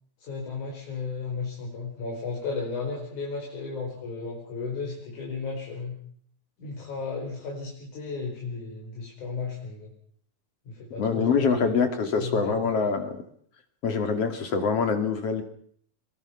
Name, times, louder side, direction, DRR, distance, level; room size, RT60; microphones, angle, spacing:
voice 1, 0.2-6.0 6.6-9.9 10.7-11.9 12.2-12.9, left 4 dB, 85° left, -2 dB, 6.3 m, -34 dB
voice 2, 11.0-13.2 13.8-15.4, left 5 dB, 55° left, 6 dB, 3.3 m, -25 dB
23.5 x 22.0 x 5.8 m, 0.62 s
omnidirectional pair, 3.4 m